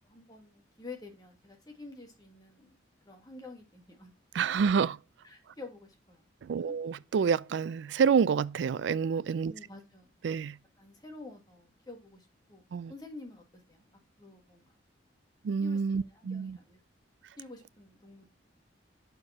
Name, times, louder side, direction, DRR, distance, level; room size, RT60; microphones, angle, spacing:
voice 1, 0.0-2.8 3.0-4.1 5.2-6.3 6.6-6.7 9.5-10.1 10.8-12.6 12.9-13.9 14.2-14.8 15.6-16.8 17.4-18.3, left 3 dB, 20° left, 1.7 m, -49 dB
voice 2, 4.3-5.0 6.4-9.5 10.2-10.5 12.7-12.9 15.4-16.6, right 6 dB, 70° right, 0.3 m, -28 dB
6.6 x 4.6 x 4.1 m
head